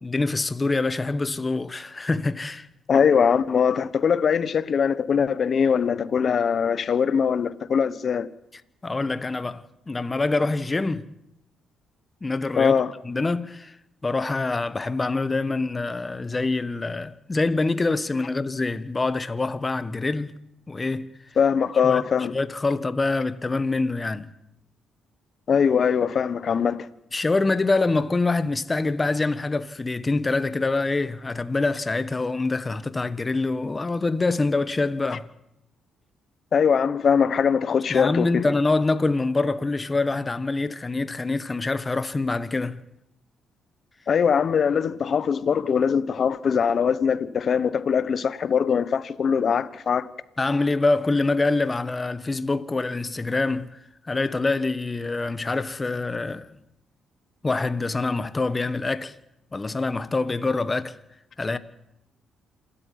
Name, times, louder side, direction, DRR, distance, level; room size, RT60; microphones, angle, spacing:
voice 1, 0.0-2.7 8.8-11.1 12.2-12.8 13.0-13.8 14.0-20.3 20.7-21.1 21.8-22.0 22.3-24.3 27.1-35.3 37.9-42.8 50.4-53.8 54.0-56.5 57.4-59.1 59.5-61.0 61.4-61.6, left 3 dB, 25° left, 1.3 m, -25 dB
voice 2, 2.9-8.3 12.6-12.9 21.4-22.3 25.5-26.9 36.5-38.5 44.1-50.1, left 7 dB, 50° left, 1.2 m, -22 dB
27.5 x 13.0 x 9.4 m
cardioid pair, 90°, 0 cm